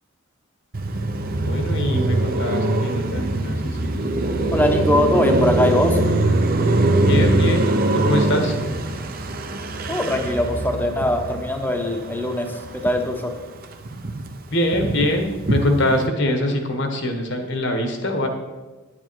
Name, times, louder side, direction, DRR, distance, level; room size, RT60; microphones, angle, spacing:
Car passing by, 0.7-13.2 13.5-16.0, right 2 dB, 40° right, 0.8 m, -22 dB
voice 1, 1.2-4.7 7.0-8.6 14.5-18.3, left 1 dB, 55° left, 5 dB, 1.4 m, -24 dB
voice 2, 4.5-6.0 9.9-13.3, left 1 dB, 10° left, 4 dB, 0.9 m, -21 dB
9.4 x 9.3 x 4.6 m, 1.3 s
head